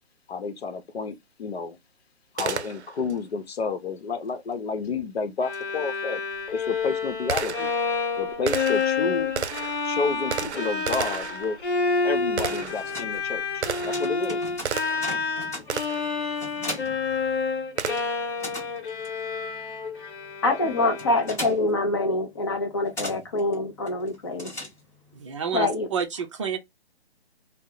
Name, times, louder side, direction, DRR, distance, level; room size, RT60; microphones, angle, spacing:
voice 1, 0.3-1.8 2.3-6.2 6.5-7.7 8.2-9.3 9.9-11.6 12.0-14.4, left 4 dB, 65° left, 0.8 m, -30 dB
Gunshot gunfire, 2.4-3.2 5.5-5.6 6.3-15.2 15.7-16.2 17.8-18.3, right 7 dB, 85° right, 0.5 m, -33 dB
Bowed string instrument, 5.4-21.5, left 4 dB, 50° left, 1.1 m, -29 dB
sound 1, 12.2-17.8 18.1-25.2, left 1 dB, 10° left, 0.9 m, -40 dB
voice 2, 20.4-24.5 25.5-25.9, left 2 dB, 25° left, 0.5 m, -25 dB
voice 3, 25.1-26.6, right 7 dB, 30° right, 0.5 m, -29 dB
2.7 x 2.0 x 3.8 m
hypercardioid pair, 145°, 33 cm